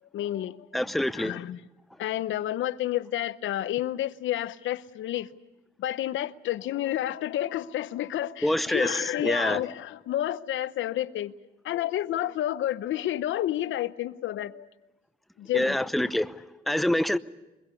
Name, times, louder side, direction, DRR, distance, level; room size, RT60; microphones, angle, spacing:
voice 1, 0.1-0.8 1.1-1.6 2.0-5.3 5.8-11.4 11.6-14.7 15.4-15.8, left 13 dB, 75° left, 0.8 m, -30 dB
voice 2, 0.7-1.4 8.4-9.6 15.5-17.2, left 1 dB, ahead, 0.7 m, -26 dB
23.5 x 22.0 x 8.3 m
cardioid pair, 90°, 20 cm